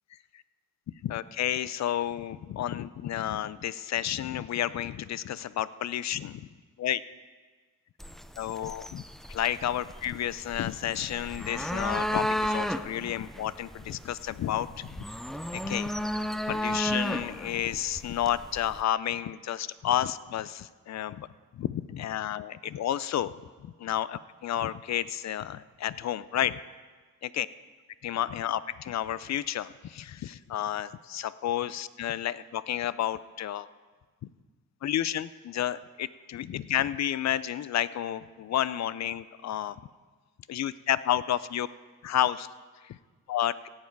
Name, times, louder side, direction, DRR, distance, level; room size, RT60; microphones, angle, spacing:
voice 1, 1.0-6.5 6.8-7.0 8.4-9.0 9.3-15.0 15.5-15.9 16.5-21.3 21.5-23.3 23.6-26.6 27.2-27.5 28.0-33.7 34.8-39.8 40.5-41.7 42.0-42.5 42.8-43.0 43.3-43.5, left 11 dB, 50° left, 17 dB, 0.5 m, -31 dB
sound 1, 8.0-18.8, equal, ahead, 0.4 m, -34 dB
17.5 x 7.4 x 4.6 m, 1.4 s
cardioid pair, 65°, 34 cm